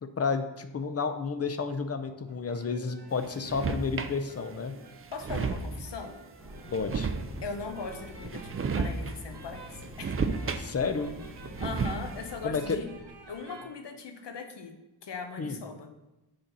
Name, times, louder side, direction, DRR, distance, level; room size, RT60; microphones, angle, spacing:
voice 1, 0.0-4.8 6.7-7.1 10.6-11.1 12.4-12.8 15.4-15.6, left 5 dB, 35° left, 9 dB, 0.5 m, -31 dB
sound 1, 2.3-13.6, right 2 dB, 65° right, 1.1 m, -51 dB
sound 2, 3.2-4.2 4.7-4.8 5.0-5.9 6.7-7.6 8.2-9.2 9.5-11.0 11.3-12.3, right 4 dB, 30° right, 0.4 m, -33 dB
voice 2, 5.1-6.2 7.4-10.4 11.6-12.9 13.3-15.9, left 4 dB, 70° left, 6 dB, 0.9 m, -40 dB
sound 3, 6.4-13.4, equal, ahead, 1.3 m, -47 dB
6.4 x 4.1 x 5.9 m, 0.99 s
wide cardioid pair, 150°, 44 cm